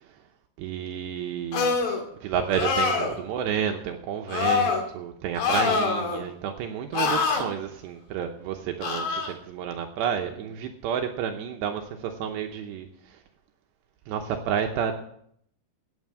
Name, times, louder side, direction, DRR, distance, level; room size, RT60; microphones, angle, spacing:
voice 1, 0.6-1.8 2.2-13.2 14.1-14.9, right 8 dB, 75° right, 4 dB, 2.8 m, -30 dB
sound 1, 1.5-2.0 2.5-3.2 4.3-4.8 5.4-6.2 6.9-7.4 8.8-9.3, left 5 dB, 85° left, 4.7 m, -25 dB
11.0 x 9.2 x 7.5 m, 0.68 s
omnidirectional pair, 5.4 m